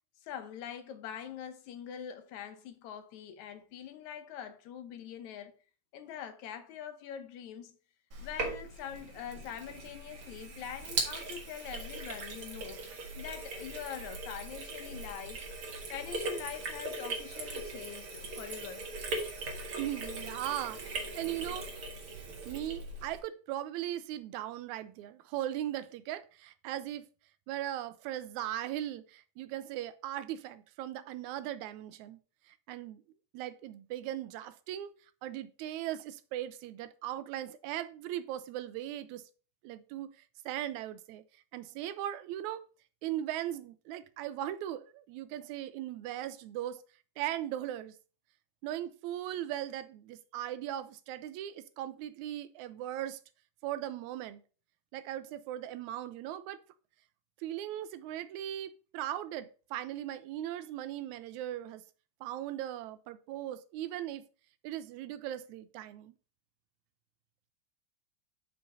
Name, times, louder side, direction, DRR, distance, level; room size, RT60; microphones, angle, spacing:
voice 1, 0.2-5.5 5.9-7.8 8.2-12.8 13.2-15.5 15.9-18.9, left 9 dB, 75° left, 2.2 m, -44 dB
Sink (filling or washing), 8.1-23.2, right 3 dB, 50° right, 2.3 m, -40 dB
voice 2, 19.8-21.7 22.5-27.1 27.5-32.2 32.5-33.0 33.3-34.9 35.2-39.2 39.6-41.2 41.5-42.6 43.0-46.8 47.2-47.9 48.6-53.2 53.6-54.4 54.9-56.6 57.4-61.8 62.2-64.2 64.6-66.1, right 12 dB, 85° right, 2.0 m, -38 dB
5.8 x 5.4 x 5.4 m
omnidirectional pair, 3.4 m